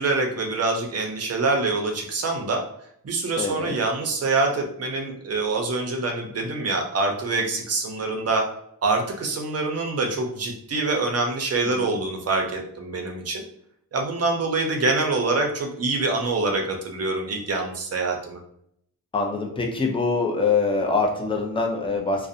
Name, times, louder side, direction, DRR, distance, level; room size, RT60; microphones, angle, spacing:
voice 1, 0.0-2.6 3.0-8.4 8.8-13.4 13.9-18.4, right 3 dB, 40° right, 2 dB, 0.5 m, -25 dB
voice 2, 3.4-3.7 11.6-11.9 19.1-22.3, left 4 dB, 15° left, 2 dB, 0.4 m, -24 dB
2.5 x 2.0 x 2.6 m, 0.70 s
wide cardioid pair, 130°, 37 cm